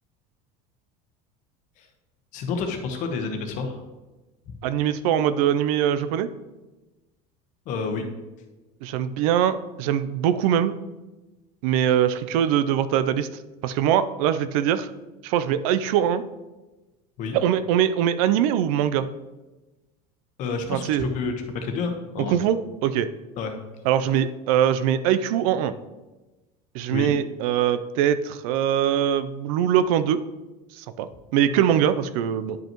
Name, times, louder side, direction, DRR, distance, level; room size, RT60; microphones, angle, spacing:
voice 1, 2.3-3.8 4.5-4.6 7.7-8.0 17.2-17.3 20.4-22.4 23.4-23.5 26.9-27.1 31.5-31.6, left 4 dB, 45° left, 5 dB, 1.0 m, -29 dB
voice 2, 4.6-6.3 8.8-10.8 11.6-13.3 13.6-14.9 15.2-16.2 17.3-19.1 20.7-21.1 22.2-23.1 23.8-25.7 26.7-30.2 30.7-32.6, right 10 dB, 80° right, 12 dB, 0.5 m, -22 dB
10.5 x 5.4 x 3.0 m, 1.1 s
cardioid pair, 165°, 18 cm